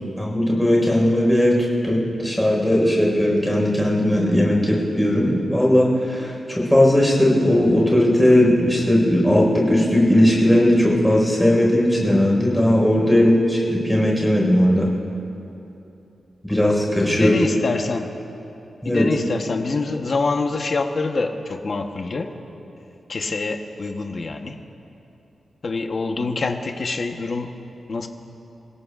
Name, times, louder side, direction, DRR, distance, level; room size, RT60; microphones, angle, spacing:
voice 1, 0.2-14.9 16.5-17.3 18.8-19.0, left 1 dB, 5° left, -4 dB, 4.7 m, -18 dB
voice 2, 17.1-18.1 18.8-22.3 22.8-24.6 25.6-27.5 27.9-28.1, left 3 dB, 45° left, 4 dB, 1.0 m, -26 dB
29.5 x 17.0 x 2.5 m, 2.8 s
wide cardioid pair, 150°, 0 cm